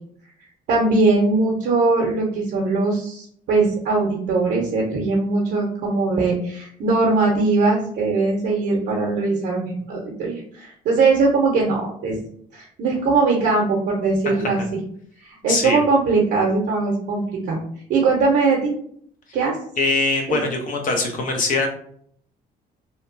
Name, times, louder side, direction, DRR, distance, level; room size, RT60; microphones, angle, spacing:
voice 1, 0.7-12.1 12.5-14.6 15.2-17.6 17.9-18.7 19.3-19.6 20.3-20.4, right 3 dB, 70° right, -2 dB, 0.7 m, -20 dB
voice 2, 15.4-15.8 19.8-21.7, left 3 dB, 50° left, 2 dB, 0.7 m, -22 dB
2.8 x 2.2 x 2.5 m, 0.63 s
cardioid pair, 110°, 17 cm